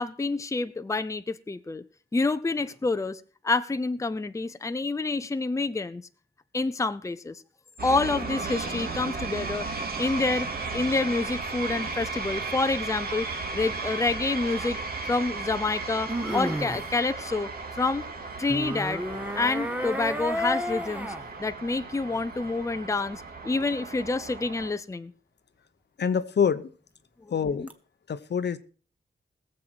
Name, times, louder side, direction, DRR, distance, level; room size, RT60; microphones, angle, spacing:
voice 1, 0.0-1.8 2.1-6.0 6.5-7.4 7.8-9.7 10.0-13.3 13.5-14.8 15.1-18.1 18.4-19.1 19.4-21.1 21.4-25.1 27.2-27.3, left 3 dB, 15° left, 0.6 m, -28 dB
sound 1, 7.8-24.7, right 4 dB, 55° right, 2.2 m, -35 dB
sound 2, 14.6-14.7 16.1-16.9 18.5-21.3 27.7-27.8, equal, 10° right, 1.1 m, -31 dB
voice 2, 26.0-26.7 27.3-27.7 28.1-28.6, left 7 dB, 70° left, 0.9 m, -26 dB
20.5 x 7.6 x 4.6 m
wide cardioid pair, 150°, 18 cm